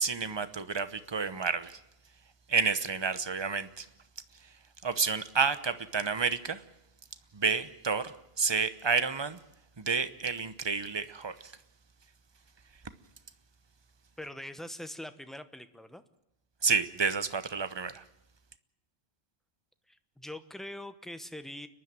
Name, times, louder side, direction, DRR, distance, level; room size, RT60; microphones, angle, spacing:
voice 1, 0.0-1.8 2.5-3.9 4.4-4.5 4.8-6.6 7.3-9.4 9.8-11.5 16.6-18.0, right 5 dB, 25° right, 13 dB, 0.9 m, -30 dB
voice 2, 14.2-16.0 19.9-21.7, left 1 dB, ahead, 10 dB, 0.9 m, -43 dB
29.5 x 11.5 x 8.9 m, 0.84 s
omnidirectional pair, 1.1 m